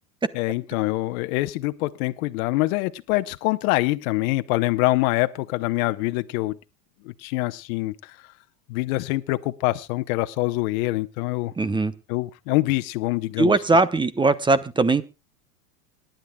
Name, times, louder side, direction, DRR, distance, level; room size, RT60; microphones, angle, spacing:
voice 1, 0.3-6.6 7.0-8.2 8.7-11.5 12.1-13.6, left 19 dB, 60° left, 1.0 m, -25 dB
voice 2, 11.6-11.9 13.4-15.0, right 3 dB, 10° right, 0.8 m, -20 dB
26.0 x 10.5 x 2.3 m
hypercardioid pair, 110°, 48 cm